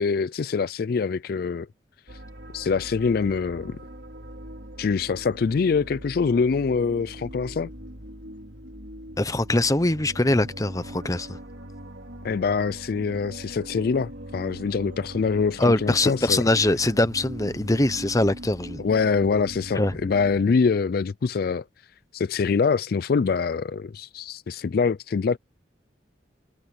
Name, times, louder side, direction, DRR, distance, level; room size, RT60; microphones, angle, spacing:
voice 1, 0.0-1.7 2.5-3.8 4.8-7.7 12.2-16.4 18.8-21.6 22.1-25.4, left 5 dB, 55° left, 0.4 m, -24 dB
sound 1, 2.1-20.4, equal, 75° right, 4.6 m, -41 dB
voice 2, 9.2-11.4 15.6-18.8 19.7-19.9, left 2 dB, 20° left, 0.9 m, -22 dB
head